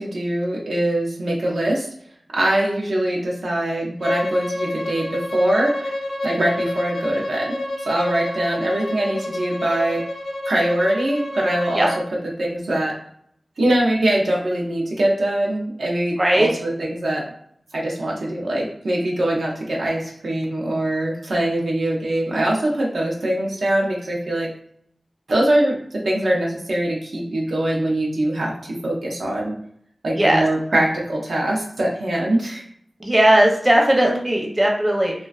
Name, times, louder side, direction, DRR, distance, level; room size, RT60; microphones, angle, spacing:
voice 1, 0.0-1.9 2.3-5.9 6.2-7.6 7.9-10.0 10.4-11.9 12.4-12.9 13.6-17.3 17.7-24.5 25.3-29.6 30.0-32.6, right 1 dB, 85° right, -2 dB, 0.5 m, -22 dB
Bowed string instrument, 4.0-12.0, left 1 dB, 60° left, 0.4 m, -29 dB
voice 2, 16.2-16.5 30.2-30.4 33.0-35.1, right 1 dB, 25° right, 0 dB, 0.6 m, -17 dB
2.4 x 2.2 x 2.3 m, 0.65 s
wide cardioid pair, 60°, 0 cm